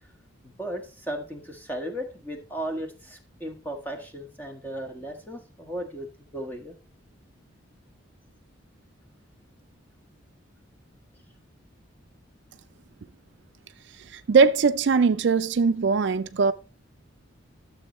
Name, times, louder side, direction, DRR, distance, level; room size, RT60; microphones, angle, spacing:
voice 1, 0.6-6.1 6.3-6.7, right 1 dB, 10° left, 1.3 m, -35 dB
voice 2, 14.1-16.5, right 5 dB, 55° right, 0.4 m, -20 dB
12.0 x 7.0 x 3.1 m
head